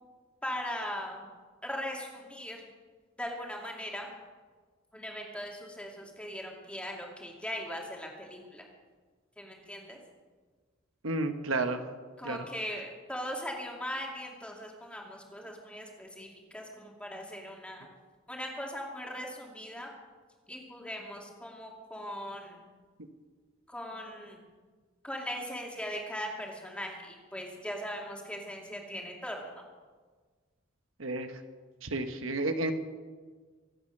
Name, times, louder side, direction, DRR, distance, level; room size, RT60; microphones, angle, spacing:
voice 1, 0.4-1.2 1.6-2.6 3.2-4.1 4.9-8.6 9.4-10.0 12.2-17.9 18.3-19.9 20.5-22.6 23.7-24.4 25.0-29.6, equal, 5° left, -1 dB, 2.5 m, -39 dB
voice 2, 11.0-11.8 12.2-12.4 31.0-31.3 31.8-32.7, right 2 dB, 80° right, 7 dB, 1.2 m, -31 dB
24.5 x 8.6 x 6.6 m, 1.5 s
head